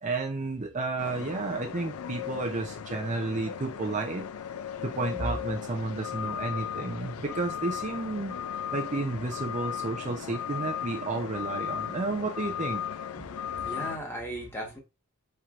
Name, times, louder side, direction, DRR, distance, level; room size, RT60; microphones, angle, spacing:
voice 1, 0.0-4.3 4.8-8.4 8.7-12.8, right 3 dB, 35° right, 0.5 m, -32 dB
sound 1, 1.0-14.0, left 8 dB, 85° left, 0.4 m, -36 dB
voice 2, 13.2-14.8, right 1 dB, 10° left, 1.3 m, -37 dB
4.6 x 4.4 x 2.5 m
head